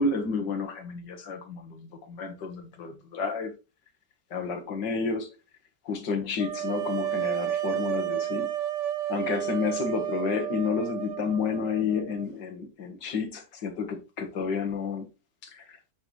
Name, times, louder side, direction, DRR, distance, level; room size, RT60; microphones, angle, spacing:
voice 1, 0.0-3.5 4.3-5.3 5.9-8.5 9.1-15.1 15.4-15.8, left 5 dB, 80° left, 2.1 m, -30 dB
sound 1, 6.4-12.3, right 12 dB, 80° right, 1.4 m, -31 dB
8.7 x 5.8 x 3.1 m
omnidirectional pair, 1.9 m